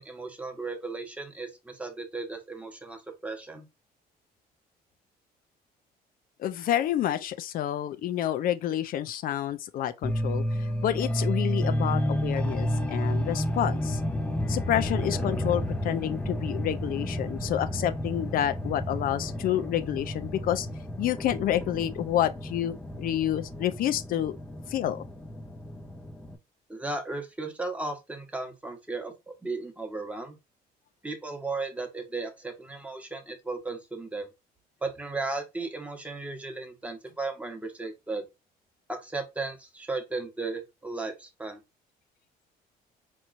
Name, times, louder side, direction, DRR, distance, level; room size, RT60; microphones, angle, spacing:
voice 1, 0.0-3.7 26.7-30.4 31.0-34.3 34.8-38.3 38.9-41.6, right 3 dB, 10° right, 1.0 m, -35 dB
voice 2, 6.4-14.0 14.5-20.7 21.0-24.4 24.7-25.1, left 11 dB, 60° left, 0.5 m, -29 dB
sound 1, 10.0-26.4, equal, 10° left, 0.5 m, -31 dB
4.2 x 3.0 x 2.5 m
cardioid pair, 110°, 17 cm